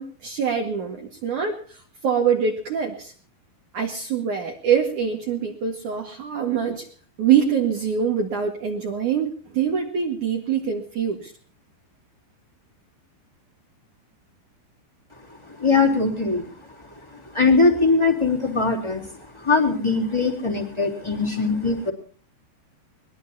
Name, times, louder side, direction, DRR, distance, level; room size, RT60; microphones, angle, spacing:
voice 1, 0.0-3.1 3.7-6.9 7.2-11.3, right 7 dB, 55° right, 1 dB, 2.8 m, -24 dB
voice 2, 15.5-16.5 17.1-21.9, left 3 dB, 5° left, 1 dB, 2.9 m, -21 dB
22.5 x 21.0 x 2.8 m, 0.43 s
omnidirectional pair, 5.0 m